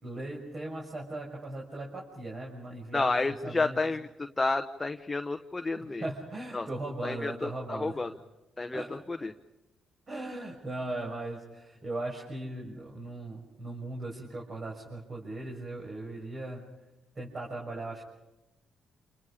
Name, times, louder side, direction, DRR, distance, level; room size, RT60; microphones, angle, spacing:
voice 1, 0.0-3.8 5.7-8.0 8.7-9.0 10.1-16.6 17.1-18.0, right 2 dB, 40° right, -2 dB, 6.4 m, -38 dB
voice 2, 2.9-6.0 6.5-6.7 7.0-8.1 8.6-9.3, left 3 dB, 20° left, 7 dB, 1.0 m, -31 dB
29.0 x 28.5 x 5.0 m, 1.0 s
cardioid pair, 90°, 0 cm